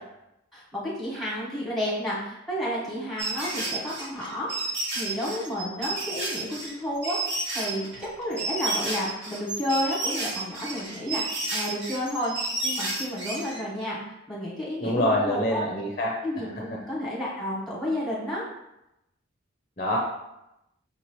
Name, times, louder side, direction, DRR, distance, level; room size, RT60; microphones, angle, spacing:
voice 1, 0.5-15.6 16.2-18.4, equal, ahead, -7 dB, 1.3 m, -31 dB
sound 1, 3.2-13.6, right 2 dB, 55° right, 1.0 m, -31 dB
voice 2, 14.8-16.1 19.8-20.0, left 1 dB, 35° left, -2 dB, 0.6 m, -25 dB
5.8 x 2.9 x 3.0 m, 0.88 s
head